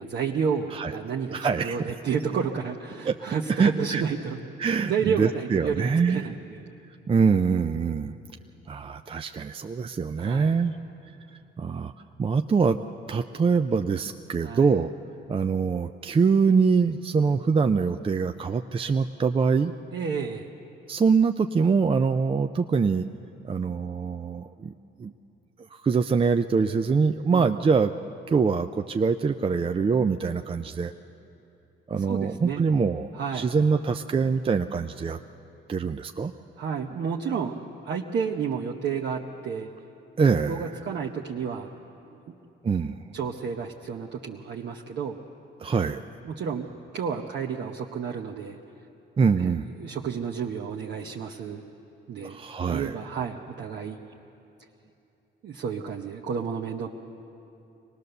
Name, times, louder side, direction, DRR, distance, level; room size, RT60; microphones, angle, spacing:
voice 1, 0.0-6.6 10.2-10.6 14.4-14.7 19.9-20.5 27.3-27.5 32.1-32.6 33.1-33.5 36.6-37.6 37.8-39.7 40.5-41.7 42.3-42.4 43.1-45.2 46.2-46.7 46.9-48.6 49.4-51.6 52.1-54.0 55.4-56.9, right 6 dB, 60° right, 0 dB, 1.0 m, -31 dB
voice 2, 1.3-1.8 3.1-3.2 3.5-4.0 4.6-6.3 7.1-8.2 8.7-10.8 11.6-11.9 12.2-12.8 13.1-14.9 15.3-19.7 20.9-23.0 23.4-24.7 25.0-25.1 25.7-27.9 28.3-30.9 31.9-35.2 35.7-36.3 40.2-40.7 42.6-43.1 45.6-46.0 49.2-49.7 52.2-53.0, right 5 dB, 25° right, 7 dB, 0.5 m, -24 dB
24.0 x 18.5 x 6.8 m, 2.8 s
cardioid pair, 90°, 20 cm